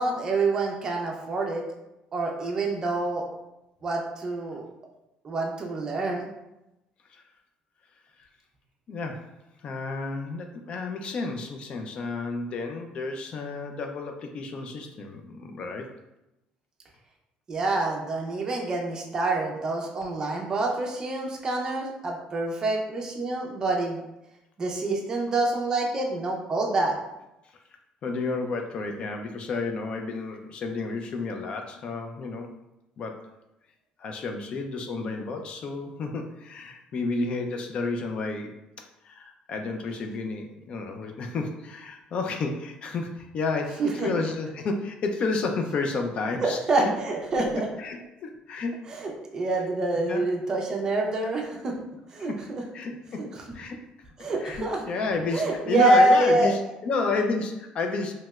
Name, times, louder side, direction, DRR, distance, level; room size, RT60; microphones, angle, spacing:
voice 1, 0.0-1.6 2.1-3.2 3.8-4.7 5.2-6.3 17.5-24.0 24.6-26.9 43.8-44.1 46.4-47.7 48.9-51.7 52.1-52.6 53.2-53.3 54.2-54.8 55.3-56.5, right 2 dB, 25° right, 0 dB, 0.4 m, -26 dB
voice 2, 8.9-9.3 9.6-15.9 28.0-32.5 33.0-33.2 34.0-38.6 39.0-46.9 47.5-48.8 49.9-50.2 52.3-52.4 52.7-53.8 54.4-58.1, left 3 dB, 40° left, 4 dB, 0.3 m, -31 dB
3.1 x 2.8 x 2.3 m, 0.93 s
cardioid pair, 165°, 3 cm